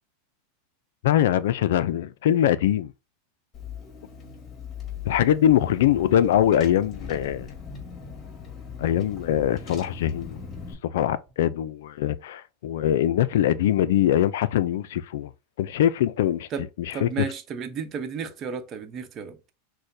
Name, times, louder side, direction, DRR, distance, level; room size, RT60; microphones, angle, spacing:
voice 1, 1.0-2.9 5.0-7.5 8.8-10.4 10.8-15.3 15.6-16.5 16.8-17.1, left 11 dB, 75° left, 0.4 m, -22 dB
Car / Engine, 3.5-10.7, left 6 dB, 30° left, 2.0 m, -39 dB
voice 2, 16.9-19.5, right 6 dB, 35° right, 0.8 m, -33 dB
6.3 x 2.1 x 2.6 m
hypercardioid pair, 115°, 0 cm